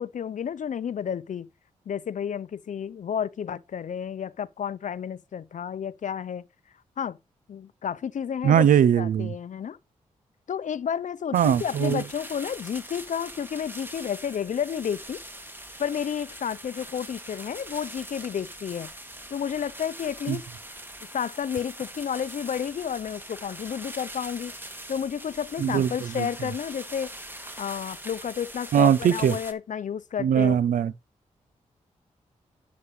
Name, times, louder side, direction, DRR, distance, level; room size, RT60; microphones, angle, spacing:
voice 1, 0.0-1.5 1.9-6.5 7.0-7.2 7.5-8.7 9.0-9.8 10.5-15.2 15.8-18.9 19.3-20.4 21.1-24.5 24.9-27.1 27.4-30.6, left 8 dB, 65° left, 0.7 m, -31 dB
voice 2, 8.4-9.3 11.3-12.0 20.3-20.4 25.6-26.3 28.7-29.4 30.2-30.9, right 9 dB, 80° right, 0.6 m, -21 dB
sound 1, 11.3-29.5, right 1 dB, 15° right, 2.5 m, -42 dB
11.0 x 8.5 x 3.2 m
supercardioid pair, 45°, 14 cm